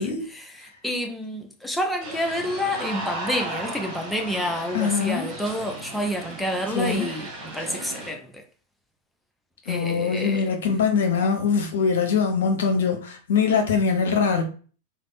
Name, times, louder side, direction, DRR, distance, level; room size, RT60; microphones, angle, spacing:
voice 1, 0.0-8.4 9.7-10.5, equal, 5° left, 0.5 m, -29 dB
sound 1, 2.0-8.1, right 2 dB, 35° right, 1.2 m, -35 dB
voice 2, 4.7-5.3 6.7-7.1 9.7-14.4, left 5 dB, 60° left, 0.6 m, -23 dB
3.3 x 2.0 x 2.4 m
figure-of-eight pair, 90°, 0 cm